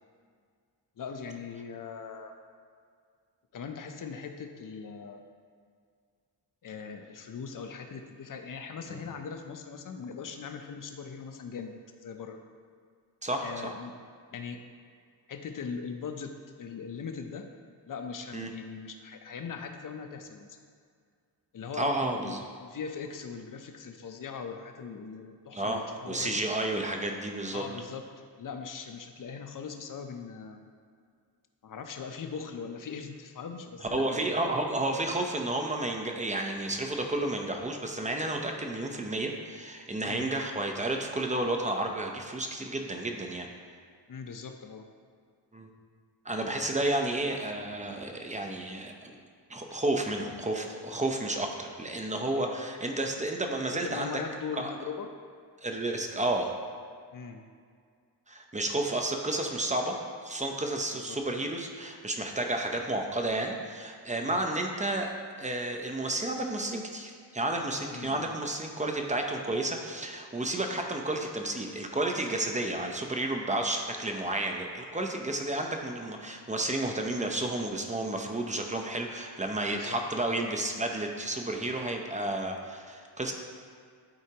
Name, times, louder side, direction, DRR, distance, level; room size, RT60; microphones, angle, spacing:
voice 1, 1.0-2.3 3.5-5.2 6.6-12.4 13.4-14.0 14.3-14.6 15.3-17.5 17.8-20.6 21.5-26.4 27.4-28.1 28.4-30.6 31.6-34.5 40.0-40.3 44.1-44.9 46.8-46.9 53.7-55.1 57.1-57.4 60.9-61.2 64.2-64.4 67.9-68.3 79.7-80.0, left 6 dB, 50° left, 6 dB, 0.7 m, -40 dB
voice 2, 13.2-13.7 18.3-18.5 21.8-22.4 25.5-27.6 33.9-43.5 45.5-45.7 46.2-49.1 49.5-54.1 54.6-54.7 55.6-56.5 58.3-60.0 60.2-65.1 65.4-83.3, right 2 dB, 15° right, 2 dB, 0.8 m, -31 dB
11.5 x 4.3 x 2.9 m, 2.1 s
cardioid pair, 90°, 41 cm